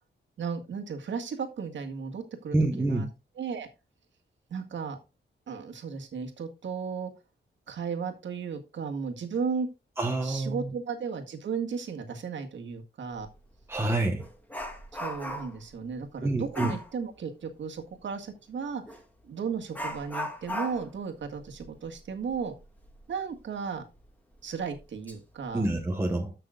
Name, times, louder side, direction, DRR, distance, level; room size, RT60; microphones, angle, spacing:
voice 1, 0.4-3.1 3.4-3.7 4.5-5.0 5.5-7.1 7.7-9.7 10.2-13.3 15.0-18.8 19.3-22.5 23.1-23.8 24.4-25.7, right 6 dB, 80° right, 1.8 m, -35 dB
voice 2, 2.5-3.0 10.0-10.7 13.7-14.2 16.2-16.7 25.5-26.3, right 2 dB, 15° right, 1.2 m, -27 dB
Dog, 13.2-13.3 13.7-15.7 16.5-16.9 18.9-19.0 19.7-23.0 23.3-23.4 24.0-24.1 24.7-25.1 25.5-25.7, left 1 dB, 10° left, 1.9 m, -38 dB
14.0 x 6.0 x 2.4 m
wide cardioid pair, 130°, 19 cm